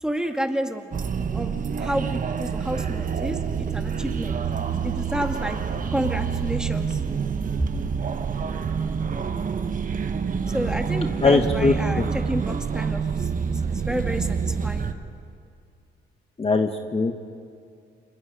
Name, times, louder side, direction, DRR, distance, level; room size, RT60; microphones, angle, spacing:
voice 1, 0.0-3.4 3.7-4.4 4.8-5.6 5.9-7.0 10.5-13.3 13.7-14.9, equal, 5° right, 4 dB, 2.0 m, -30 dB
sound 1, 0.9-14.9, right 6 dB, 45° right, 1.3 m, -27 dB
voice 2, 11.2-12.1 16.4-17.1, left 3 dB, 30° left, 5 dB, 1.4 m, -21 dB
29.5 x 26.5 x 5.0 m, 2.4 s
cardioid pair, 90°, 20 cm